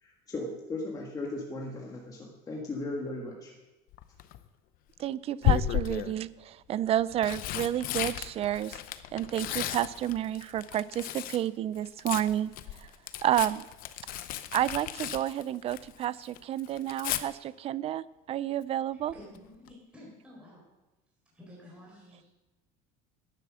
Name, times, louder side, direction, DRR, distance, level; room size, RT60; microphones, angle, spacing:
voice 1, 0.0-3.5, left 2 dB, 20° left, -1 dB, 1.7 m, -37 dB
Tearing, 3.9-4.4 5.4-6.2 6.9-11.5 11.7-16.0 16.3-17.2 19.1-19.4 19.7-19.8, left 12 dB, 55° left, 0.8 m, -33 dB
voice 2, 5.0-8.8 9.1-12.5 12.8-12.9 13.2-13.7 14.5-19.1, right 12 dB, 35° right, 19 dB, 0.4 m, -30 dB
voice 3, 18.9-20.7 21.3-22.3, left 1 dB, 5° right, -4 dB, 4.4 m, -51 dB
10.5 x 10.0 x 6.2 m, 1.1 s
cardioid pair, 140°, 18 cm